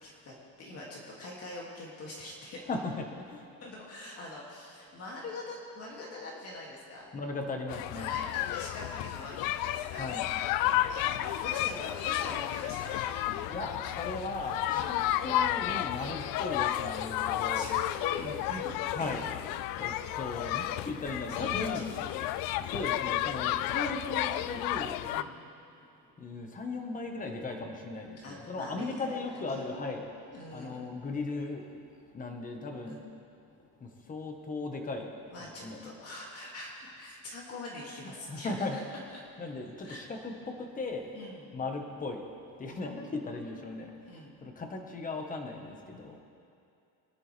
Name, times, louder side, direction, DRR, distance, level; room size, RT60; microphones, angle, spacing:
voice 1, 0.0-2.6 3.6-7.1 7.9-10.1 10.9-13.3 13.6-13.8 14.7-14.9 16.1-16.3 17.5-17.7 18.0-19.2 21.3-22.2 22.4-22.5 25.0-25.4 28.2-28.9 29.3-30.1 30.3-30.9 32.9-33.0 35.3-38.8 39.1-39.2 39.8-40.1 41.1-41.5 42.6-43.8 44.0-44.3, left 2 dB, 40° left, -3 dB, 2.7 m, -43 dB
voice 2, 2.7-3.5 7.1-8.1 9.9-10.3 13.4-17.7 18.9-19.2 19.7-21.9 22.6-25.0 26.2-30.1 30.5-31.8 32.1-33.0 33.8-35.8 38.3-38.8 39.4-41.1 41.5-42.3 42.6-46.2, left 3 dB, 20° left, 3 dB, 1.5 m, -37 dB
sound 1, 7.7-25.2, left 13 dB, 65° left, 0.5 m, -32 dB
25.0 x 11.0 x 3.5 m, 2.6 s
cardioid pair, 155°, 37 cm